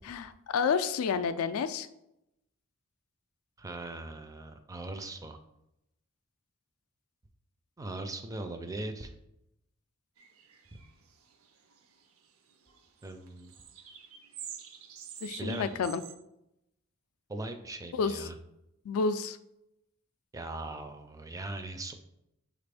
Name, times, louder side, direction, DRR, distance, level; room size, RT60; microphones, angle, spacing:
voice 1, 0.0-1.9 15.2-16.0 17.9-18.3 18.9-19.4, left 5 dB, 75° left, 12 dB, 0.3 m, -30 dB
voice 2, 3.6-5.4 7.8-9.1 10.7-10.8 13.0-13.5 15.4-15.8 17.3-18.4 20.3-21.9, right 2 dB, 15° right, 7 dB, 0.3 m, -39 dB
sound 1, 10.2-12.2 12.5-16.1, right 8 dB, 70° right, 0.5 m, -47 dB
6.0 x 2.5 x 3.3 m, 0.84 s
head